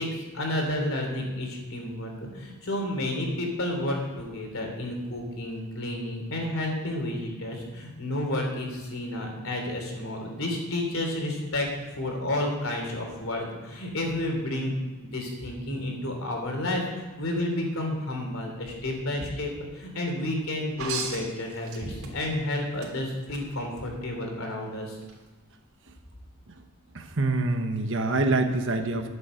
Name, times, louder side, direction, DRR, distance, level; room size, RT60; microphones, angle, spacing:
voice 1, 0.0-11.7 11.9-14.8 15.0-25.0, left 1 dB, 65° left, 2 dB, 3.2 m, -31 dB
sound 1, 20.8-22.4 22.8-23.4 25.0-25.1, right 4 dB, 75° right, 3.3 m, -35 dB
voice 2, 26.9-29.1, right 2 dB, 55° right, 6 dB, 1.2 m, -26 dB
12.0 x 8.0 x 7.7 m, 1.2 s
head